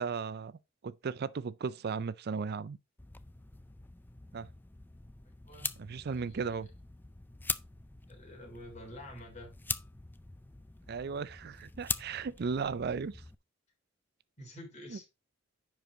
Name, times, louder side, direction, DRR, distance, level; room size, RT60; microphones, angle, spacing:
voice 1, 0.0-2.8 4.3-4.5 5.8-6.7 10.9-13.1 14.9-15.0, right 5 dB, 55° right, 0.4 m, -36 dB
sound 1, 3.0-13.4, left 4 dB, 10° left, 0.4 m, -43 dB
voice 2, 5.2-5.7 6.0-6.5 8.1-9.6 12.6-12.7 14.4-15.1, left 1 dB, 35° left, 3.5 m, -49 dB
10.0 x 4.8 x 3.7 m
head